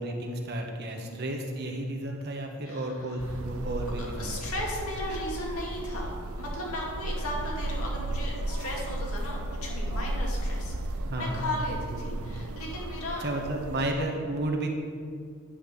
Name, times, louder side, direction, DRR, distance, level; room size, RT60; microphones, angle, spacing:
voice 1, 0.0-4.3 11.1-11.4 11.9-12.1 13.2-14.7, right 1 dB, 50° right, 2 dB, 1.4 m, -32 dB
voice 2, 2.6-3.4 4.0-13.3, left 1 dB, 75° left, -2 dB, 2.4 m, -36 dB
sound 1, 3.2-13.9, right 1 dB, 75° right, 0.7 m, -34 dB
10.5 x 5.7 x 7.0 m, 2.1 s
head